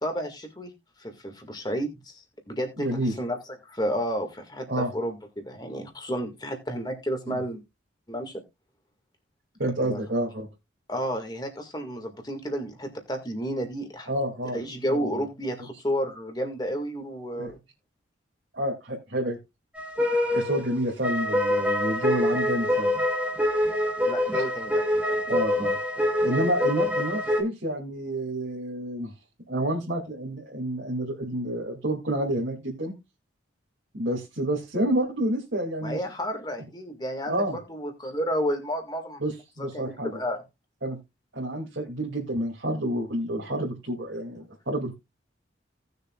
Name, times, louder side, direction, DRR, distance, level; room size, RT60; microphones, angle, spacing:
voice 1, 0.0-0.7 1.0-7.6 8.1-8.4 9.8-10.1 10.9-14.1 14.5-17.6 24.1-25.2 35.8-39.2 39.6-40.4, equal, 20° left, 4 dB, 1.9 m, -31 dB
voice 2, 2.8-3.1 4.7-4.9 7.3-7.4 9.6-10.5 14.1-14.6 14.9-15.2 17.3-17.5 18.5-19.4 20.3-22.9 24.3-24.4 25.3-25.8 26.2-29.1 29.5-32.9 33.9-36.0 37.3-37.6 39.2-40.1 40.8-41.0 41.3-44.9, right 1 dB, 70° right, -1 dB, 2.4 m, -29 dB
sound 1, 19.8-27.4, left 1 dB, 5° right, 2.4 m, -25 dB
18.0 x 6.7 x 2.4 m, 0.23 s
head